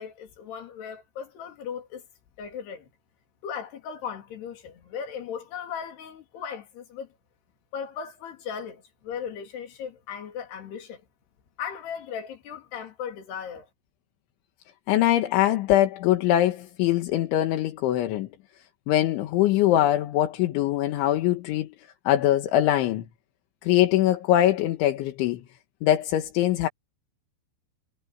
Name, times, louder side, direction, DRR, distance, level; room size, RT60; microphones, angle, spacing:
voice 1, 0.0-2.0 2.4-2.9 3.4-7.1 7.7-11.0 11.6-13.7, left 7 dB, 65° left, 5.0 m, -37 dB
voice 2, 14.9-18.3 18.9-21.7 22.1-23.0 23.6-25.4 25.8-26.7, left 13 dB, 80° left, 3.9 m, -22 dB
omnidirectional pair, 5.3 m